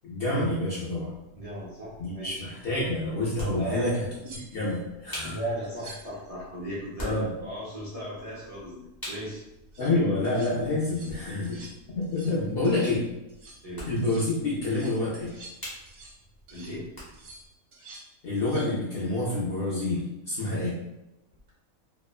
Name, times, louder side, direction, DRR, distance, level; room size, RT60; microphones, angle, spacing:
voice 1, 0.0-1.1 2.0-5.4 7.0-7.3 9.8-11.6 11.9-13.1 13.9-15.3 18.2-20.8, left 2 dB, 70° left, -7 dB, 0.5 m, -28 dB
sound 1, 1.1-17.5, equal, 20° left, 0.6 m, -46 dB
voice 2, 1.4-2.4 3.6-3.9 5.2-9.4 13.6-13.9 16.5-16.9, equal, 60° right, -9 dB, 0.3 m, -36 dB
sound 2, 3.6-3.7 4.2-4.8 5.6-6.2 9.5-9.9 10.2-10.5 10.8-11.2 11.4-11.8 12.0-12.4 12.6-13.0 13.3-13.6 14.0-14.3 14.6-16.2 16.5-16.8 17.1-18.1 18.4-18.7 21.3-21.5, right 2 dB, 45° right, 1.1 m, -49 dB
2.8 x 2.1 x 2.3 m, 0.94 s
omnidirectional pair, 1.6 m